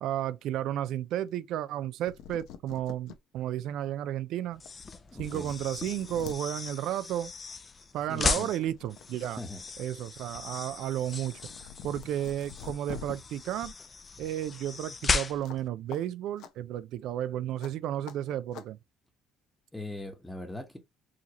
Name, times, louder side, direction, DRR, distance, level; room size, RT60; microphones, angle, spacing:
voice 1, 0.0-4.6 5.2-7.3 7.9-9.4 9.8-13.7 14.2-18.8, right 11 dB, 65° right, 0.3 m, -33 dB
sound 1, 1.8-1.9 2.0-3.2 3.7-3.8 4.7-4.8 5.1-6.4 7.7-7.8 8.2-9.3 9.6-13.1 15.4-15.6 15.9-16.0 16.4-16.5 17.6-17.7 18.1-18.2 18.5-18.7, left 9 dB, 75° left, 0.7 m, -46 dB
sound 2, 4.5-15.7, left 4 dB, 25° left, 0.5 m, -36 dB
voice 2, 5.1-5.5 8.1-8.5 9.4-9.6 19.7-20.8, left 2 dB, 5° left, 1.0 m, -40 dB
4.8 x 2.8 x 2.9 m
cardioid pair, 145°, 0 cm